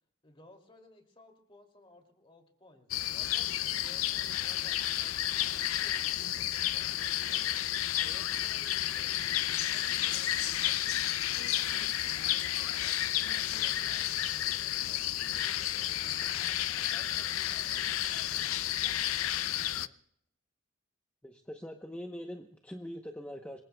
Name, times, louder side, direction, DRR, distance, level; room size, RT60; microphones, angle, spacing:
voice 1, 0.2-3.5 3.8-7.5 7.9-11.2 11.7-19.9, left 1 dB, 25° left, 2 dB, 2.7 m, -59 dB
sound 1, 2.9-19.9, left 12 dB, 85° left, 0.5 m, -31 dB
voice 2, 21.2-23.6, equal, 5° left, 3 dB, 0.8 m, -42 dB
27.5 x 22.0 x 2.3 m, 0.73 s
head